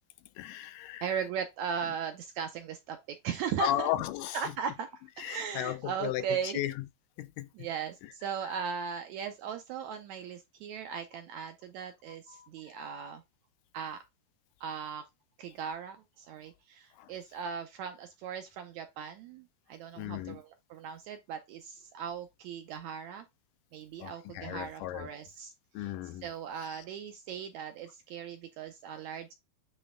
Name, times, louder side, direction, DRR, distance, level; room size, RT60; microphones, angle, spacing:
voice 1, 0.4-1.1 3.6-4.4 5.2-6.9 7.2-7.5 12.3-12.5 17.0-17.1 20.0-20.4 24.0-25.1 25.7-26.3 26.7-26.8, left 14 dB, 80° left, 2.1 m, -35 dB
voice 2, 1.0-3.9 4.3-6.6 7.5-13.2 13.7-14.0 14.6-15.0 15.4-23.3 23.7-29.3, right 7 dB, 75° right, 1.7 m, -38 dB
9.4 x 3.3 x 3.4 m
omnidirectional pair, 3.9 m